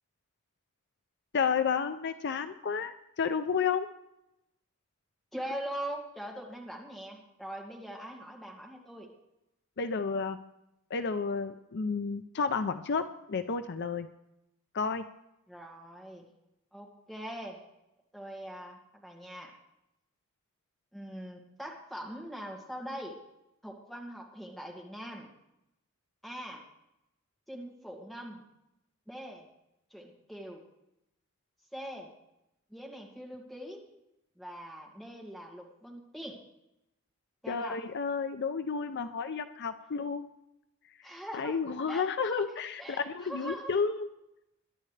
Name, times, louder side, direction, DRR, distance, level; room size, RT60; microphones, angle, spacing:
voice 1, 1.3-3.9 9.8-10.4 10.9-14.1 14.7-15.1 37.5-40.3 41.3-44.1, left 5 dB, 55° left, 10 dB, 0.5 m, -31 dB
voice 2, 5.3-9.1 15.5-16.3 16.7-17.6 18.1-19.5 20.9-23.2 23.6-25.3 26.2-26.6 27.5-28.4 29.1-29.5 29.9-30.6 31.7-32.1 32.7-33.8 34.4-36.4 37.4-37.8 41.0-41.6 41.9-42.4 42.8-43.7, equal, ahead, -1 dB, 2.2 m, -42 dB
22.0 x 11.0 x 3.3 m, 0.87 s
head